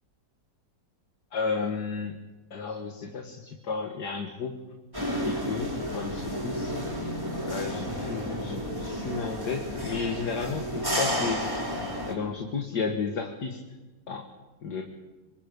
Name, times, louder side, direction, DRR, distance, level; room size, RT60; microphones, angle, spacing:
voice 1, 1.3-2.2 2.5-4.5 5.3-6.7 7.5-11.4 12.1-13.6 14.1-14.3 14.6-14.8, left 5 dB, 65° left, 3 dB, 2.2 m, -32 dB
sound 1, 4.9-12.1, equal, 10° right, 4.9 m, -31 dB
26.0 x 25.0 x 5.3 m, 1.1 s
omnidirectional pair, 1.9 m